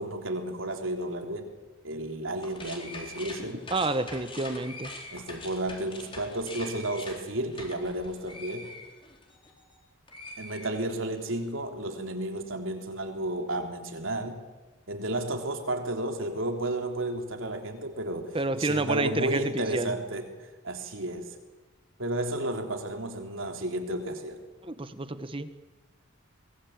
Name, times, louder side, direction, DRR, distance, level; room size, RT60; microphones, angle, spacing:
voice 1, 0.0-1.5 1.8-3.6 5.1-8.7 10.4-14.4 14.9-21.3 22.0-24.4, right 1 dB, 70° right, 4 dB, 3.5 m, -32 dB
sound 1, 2.4-9.8 10.1-11.3, left 2 dB, 25° left, 4.3 m, -44 dB
voice 2, 3.7-4.9 18.3-19.9 24.6-25.5, right 2 dB, 25° right, 11 dB, 1.3 m, -29 dB
23.5 x 21.0 x 8.8 m, 1.2 s
head